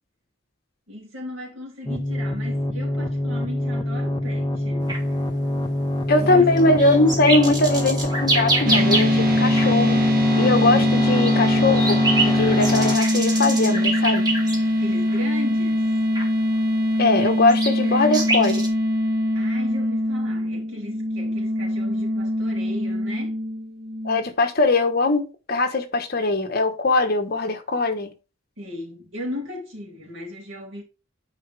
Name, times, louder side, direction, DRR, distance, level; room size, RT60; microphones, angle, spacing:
voice 1, 0.9-4.9 6.2-6.7 14.7-15.9 19.3-23.4 28.6-30.8, left 1 dB, 75° right, 3.5 m, -36 dB
sound 1, 1.9-13.0, left 1 dB, 20° left, 0.7 m, -25 dB
sound 2, 4.9-5.1 6.2-9.3 9.6-9.7 10.9-14.8 15.1-15.2 16.1-16.3 16.9-18.7, right 2 dB, 20° right, 2.1 m, -26 dB
voice 2, 6.1-10.0 10.3-14.2 17.0-18.7 24.0-28.1, left 2 dB, 50° left, 1.2 m, -21 dB
sound 3, 8.7-24.2, left 1 dB, 45° right, 1.4 m, -22 dB
9.6 x 4.9 x 3.4 m
head